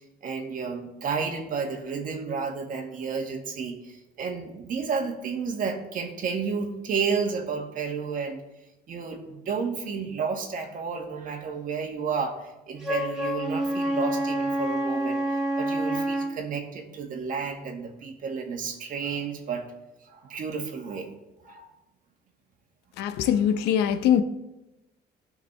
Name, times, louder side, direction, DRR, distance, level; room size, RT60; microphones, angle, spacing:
voice 1, 0.2-8.4 8.9-19.6 20.0-21.1 21.4-21.7 23.3-23.4, right 5 dB, 55° right, 1.8 m, -31 dB
Wind instrument woodwind instrument, 12.8-16.4, right 1 dB, 5° right, 2.5 m, -27 dB
voice 2, 23.0-24.2, left 9 dB, 85° left, 0.7 m, -22 dB
17.5 x 5.8 x 3.4 m
cardioid pair, 110°, 17 cm